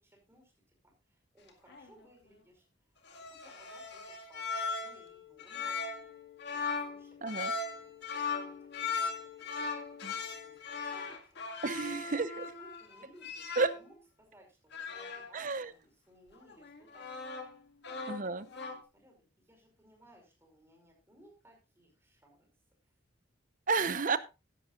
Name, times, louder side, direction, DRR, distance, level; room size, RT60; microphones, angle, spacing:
voice 1, 0.0-0.5 0.8-2.6 3.3-4.5 4.8-6.1 6.5-7.2 7.7-17.4 18.0-22.5, equal, 15° right, 0 dB, 5.0 m, -62 dB
sound 1, 1.5-1.9 3.1-13.9 14.7-15.3 16.4-17.6 17.8-18.8, left 5 dB, 60° left, 1.9 m, -39 dB
voice 2, 7.2-7.5 10.0-10.1 11.6-12.5 13.6-13.7 15.3-15.7 18.1-18.4 23.7-24.2, right 4 dB, 40° right, 14 dB, 0.7 m, -31 dB
15.0 x 11.0 x 2.5 m, 0.27 s
head